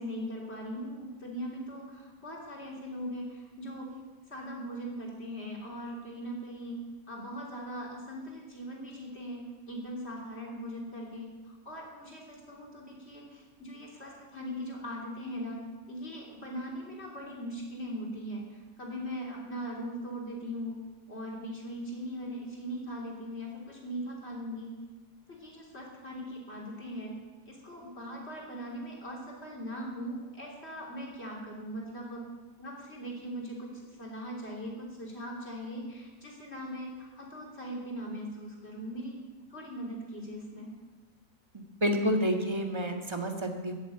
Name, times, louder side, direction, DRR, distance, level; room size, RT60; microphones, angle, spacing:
voice 1, 0.0-3.9 4.3-9.4 9.7-11.3 11.7-20.8 21.1-24.8 25.3-27.2 27.5-32.2 32.6-39.2 39.5-40.7, equal, 45° left, -2 dB, 3.7 m, -40 dB
voice 2, 41.8-43.7, equal, 20° right, 3 dB, 1.7 m, -29 dB
15.0 x 7.7 x 9.0 m, 1.3 s
omnidirectional pair, 1.6 m